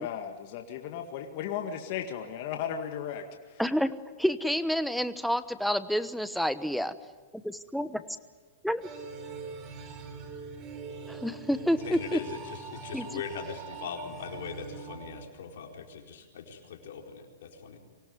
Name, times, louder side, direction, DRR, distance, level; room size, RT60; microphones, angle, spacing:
voice 1, 0.0-3.2 3.5-3.6, left 8 dB, 50° left, 4 dB, 2.0 m, -35 dB
voice 2, 3.6-3.9 4.2-6.9 7.4-8.0 8.6-8.8 11.1-12.2 12.9-13.2, equal, ahead, 11 dB, 1.0 m, -29 dB
sound 1, 8.8-15.8, right 5 dB, 35° right, 4.1 m, -43 dB
voice 3, 11.8-17.8, left 6 dB, 70° left, 2 dB, 4.3 m, -40 dB
24.0 x 18.0 x 9.5 m, 1.4 s
hypercardioid pair, 135°, 0 cm